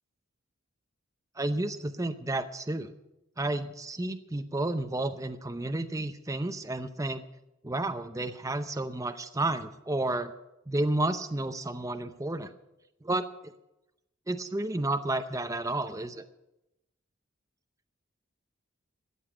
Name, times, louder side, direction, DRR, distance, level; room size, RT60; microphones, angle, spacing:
voice 1, 1.4-2.9 3.4-7.2 7.6-10.3 10.7-12.5 13.0-13.5 14.3-16.2, right 2 dB, 15° right, 8 dB, 0.6 m, -31 dB
13.5 x 7.9 x 8.7 m, 0.91 s
head